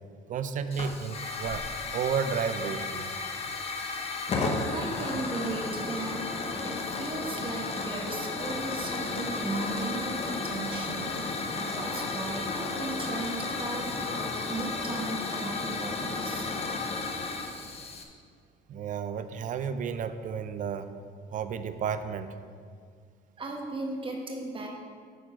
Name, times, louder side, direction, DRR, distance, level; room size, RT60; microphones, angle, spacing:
voice 1, 0.3-1.7 1.9-3.1 18.7-20.9 21.3-22.3, right 7 dB, 50° right, 11 dB, 0.5 m, -32 dB
Hiss / Fire, 0.7-18.0, left 3 dB, 35° left, 0.9 m, -33 dB
voice 2, 4.7-6.2 6.6-16.5 23.4-24.7, right 2 dB, 30° right, 1 dB, 1.4 m, -36 dB
9.1 x 4.4 x 6.0 m, 2.1 s
cardioid pair, 110°, 17 cm